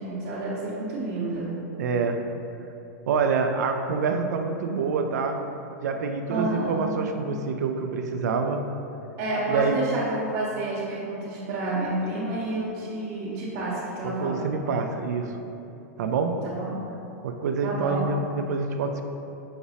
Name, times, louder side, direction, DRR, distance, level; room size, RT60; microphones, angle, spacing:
voice 1, 0.0-1.5 6.3-6.9 9.2-14.4 16.4-16.8 17.6-18.1, right 2 dB, 40° right, -10 dB, 0.8 m, -29 dB
voice 2, 1.8-2.2 3.1-5.4 5.8-8.6 9.5-9.8 14.0-15.4 16.0-16.4 17.2-19.0, right 5 dB, 80° right, 5 dB, 0.4 m, -26 dB
5.9 x 2.0 x 4.0 m, 2.9 s
supercardioid pair, 145°, 9 cm